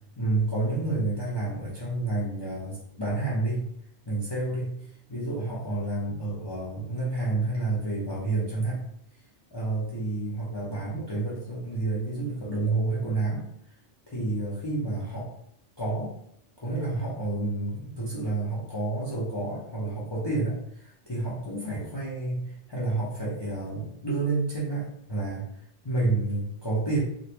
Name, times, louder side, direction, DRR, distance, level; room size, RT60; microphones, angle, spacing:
voice 1, 0.2-3.7 4.1-4.8 5.1-8.8 9.5-13.5 14.1-15.3 15.8-16.1 16.6-25.5 25.8-27.0, right 2 dB, 25° left, -7 dB, 0.6 m, -29 dB
3.2 x 2.5 x 2.8 m, 0.71 s
omnidirectional pair, 1.2 m